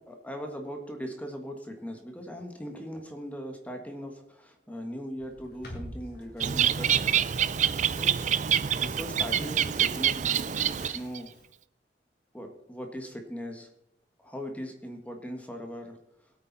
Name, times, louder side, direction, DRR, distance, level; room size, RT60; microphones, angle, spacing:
voice 1, 0.1-8.1 8.7-11.3 12.3-13.7 14.2-16.0, equal, 10° left, 3 dB, 1.6 m, -40 dB
sound 1, 5.2-11.5, equal, 60° left, 3.7 m, -49 dB
Bird, 6.4-11.2, right 9 dB, 40° right, 0.4 m, -26 dB
21.0 x 8.8 x 4.1 m, 0.81 s
head